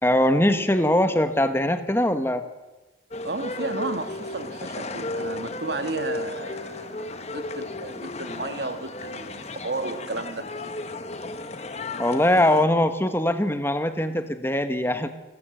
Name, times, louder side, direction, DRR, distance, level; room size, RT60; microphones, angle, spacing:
voice 1, 0.0-2.5 12.0-15.1, left 1 dB, 10° left, 9 dB, 1.1 m, -22 dB
sound 1, 3.1-12.6, left 2 dB, 35° left, 1.2 m, -34 dB
voice 2, 3.2-10.5, right 3 dB, 55° right, 9 dB, 1.5 m, -33 dB
27.0 x 14.0 x 7.6 m, 1.2 s
head